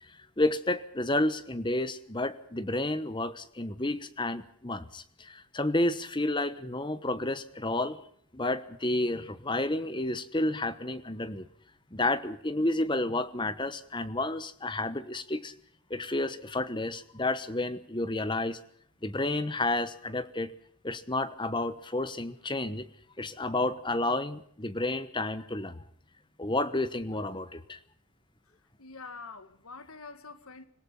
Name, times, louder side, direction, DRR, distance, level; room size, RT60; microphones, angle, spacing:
voice 1, 0.0-8.0 8.3-11.5 11.9-15.5 15.9-18.6 19.0-20.5 20.8-22.9 23.2-25.8 26.4-27.8, left 2 dB, 20° left, 1.2 m, -31 dB
voice 2, 28.8-30.7, left 4 dB, 80° left, 1.8 m, -45 dB
26.0 x 18.0 x 5.6 m
head